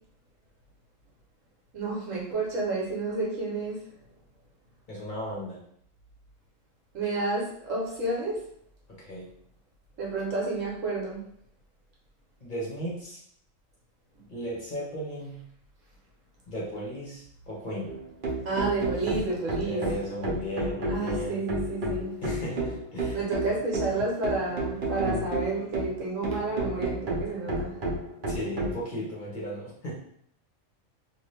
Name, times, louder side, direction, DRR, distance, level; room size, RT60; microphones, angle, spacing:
voice 1, 1.7-3.8 6.9-8.4 10.0-11.2 18.4-19.8 20.9-22.1 23.1-27.7, right 3 dB, 65° right, -3 dB, 1.3 m, -30 dB
voice 2, 4.9-5.6 9.0-9.3 12.4-13.2 14.3-15.4 16.5-17.9 19.6-21.4 22.2-23.2 28.3-29.9, equal, 40° left, -6 dB, 0.8 m, -35 dB
sound 1, 17.9-28.8, right 1 dB, 45° right, 0.8 m, -31 dB
2.7 x 2.6 x 3.2 m, 0.68 s
omnidirectional pair, 1.5 m